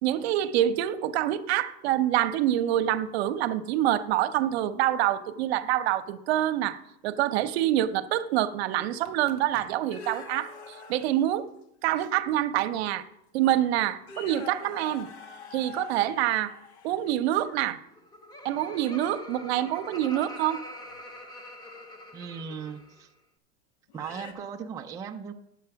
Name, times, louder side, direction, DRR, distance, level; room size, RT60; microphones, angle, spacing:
voice 1, 0.0-11.5 11.8-13.1 13.3-15.1 15.5-16.6 16.8-17.8 18.4-20.7, right 12 dB, 70° right, 0.8 m, -26 dB
sound 1, 8.9-11.4 12.0-12.1 13.0-13.1 13.4-13.6 14.0-17.7 20.8-21.0 22.8-22.9 23.9-24.3, left 5 dB, 75° left, 1.5 m, -45 dB
Laughter, 17.8-23.0, left 1 dB, 10° left, 0.9 m, -44 dB
voice 2, 22.1-23.1 23.9-25.3, right 6 dB, 10° right, 0.4 m, -38 dB
10.0 x 7.5 x 5.8 m
supercardioid pair, 150°, 33 cm